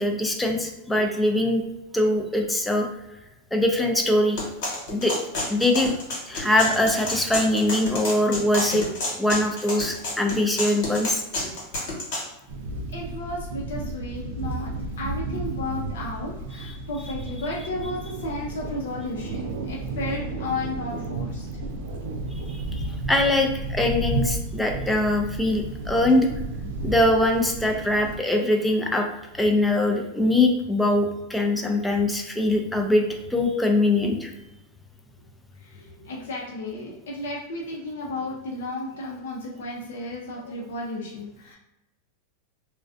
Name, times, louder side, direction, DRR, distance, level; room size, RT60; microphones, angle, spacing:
voice 1, 0.0-1.6 1.9-2.9 3.5-4.4 4.9-5.2 5.5-5.9 6.3-8.8 9.2-11.2 16.6-16.7 22.5-26.3 26.8-29.1 29.3-33.0 33.3-34.3, left 1 dB, 5° left, 3 dB, 0.4 m, -22 dB
sound 1, 4.4-12.3, left 2 dB, 65° left, 1.1 m, -30 dB
sound 2, 12.5-28.2, right 2 dB, 75° right, 0.4 m, -32 dB
voice 2, 12.9-14.7 15.0-21.5 35.6-41.6, left 2 dB, 80° left, -3 dB, 0.5 m, -33 dB
2.4 x 2.2 x 2.4 m, 0.93 s
hypercardioid pair, 115°, 0 cm